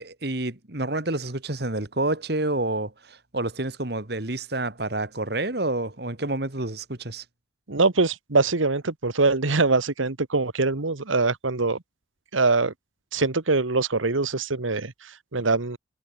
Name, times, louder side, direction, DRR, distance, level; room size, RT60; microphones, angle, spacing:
voice 1, 0.0-7.2, right 2 dB, 55° right, 2.0 m, -29 dB
voice 2, 7.7-11.8 12.3-12.7 13.1-15.8, right 3 dB, 85° right, 1.5 m, -23 dB
head